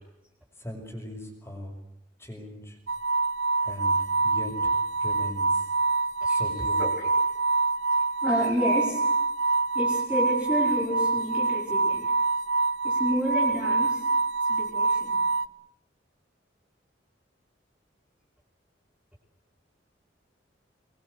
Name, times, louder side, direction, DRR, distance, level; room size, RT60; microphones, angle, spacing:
voice 1, 0.6-1.7 2.2-2.7 3.6-4.0 4.2-4.7 5.0-5.5 6.3-6.8, left 1 dB, 15° left, 3 dB, 6.4 m, -38 dB
sound 1, 2.9-15.5, right 3 dB, 80° right, 0.9 m, -25 dB
voice 2, 8.2-9.0 9.7-12.0 12.8-14.0 14.5-15.2, equal, 5° right, -2 dB, 5.3 m, -30 dB
26.0 x 22.0 x 8.1 m, 0.80 s
head